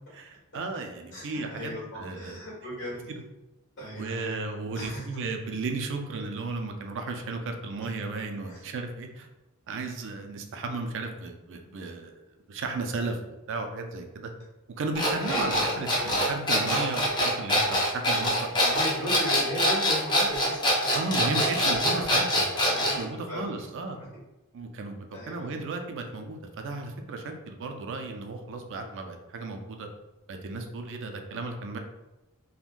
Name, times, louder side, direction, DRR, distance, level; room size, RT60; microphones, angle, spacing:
voice 1, 0.1-2.4 3.1-3.2 3.9-9.3 9.7-12.2 12.5-14.3 14.8-18.5 20.9-22.5 23.0-24.0 24.5-29.9 30.3-31.8, right 3 dB, 60° right, 5 dB, 0.4 m, -34 dB
voice 2, 1.1-3.1 3.8-4.4 4.7-5.2 8.5-8.6 15.2-16.1 18.5-22.1 22.5-22.9 23.3-23.6 24.0-24.1 25.1-25.6, equal, 55° left, -5 dB, 1.5 m, -37 dB
sound 1, 15.0-23.0, equal, 20° left, 0.6 m, -24 dB
3.6 x 2.1 x 2.5 m, 0.99 s
head